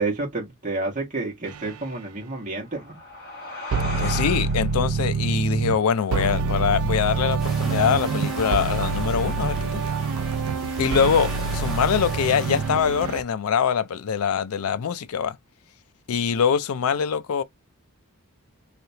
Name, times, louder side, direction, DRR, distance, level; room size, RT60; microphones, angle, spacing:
voice 1, 0.0-2.9, right 3 dB, 35° right, 1.4 m, -29 dB
sound 1, 1.5-1.7 3.7-5.8 6.1-13.2, right 4 dB, 75° right, 0.4 m, -26 dB
sound 2, 2.4-7.6, left 2 dB, 45° left, 1.5 m, -38 dB
voice 2, 4.0-9.8 10.8-15.4 16.1-17.4, left 7 dB, 80° left, 0.4 m, -23 dB
sound 3, 7.4-12.7, left 1 dB, ahead, 1.0 m, -39 dB
3.3 x 2.8 x 2.8 m
head